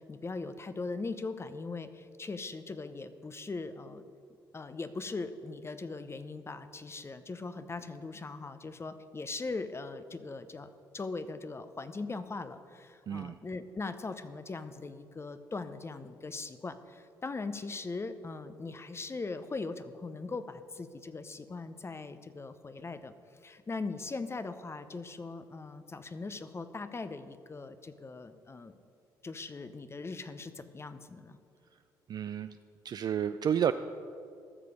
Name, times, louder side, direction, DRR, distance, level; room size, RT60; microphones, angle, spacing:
voice 1, 0.0-4.0 4.5-10.7 10.9-23.1 23.4-28.8 29.2-31.4, left 3 dB, 25° left, 11 dB, 0.7 m, -40 dB
voice 2, 13.1-13.4 32.1-32.6 32.8-33.7, right 9 dB, 45° right, 10 dB, 0.3 m, -30 dB
13.5 x 6.8 x 5.0 m, 2.4 s
hypercardioid pair, 50°, 9 cm